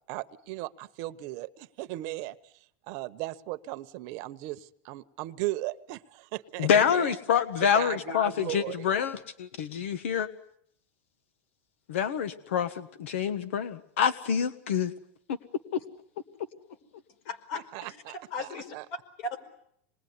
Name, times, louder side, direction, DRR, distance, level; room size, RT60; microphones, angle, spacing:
voice 1, 0.1-2.3 2.8-7.1 7.7-8.7 17.5-18.8, right 17 dB, 50° right, 12 dB, 1.1 m, -37 dB
voice 2, 6.6-10.3 11.9-14.9 15.3-15.4 15.7-15.8, left 8 dB, 90° left, 13 dB, 1.5 m, -27 dB
voice 3, 17.2-19.4, left 3 dB, 60° left, 8 dB, 4.8 m, -38 dB
26.5 x 21.0 x 9.7 m, 0.70 s
supercardioid pair, 145°, 7 cm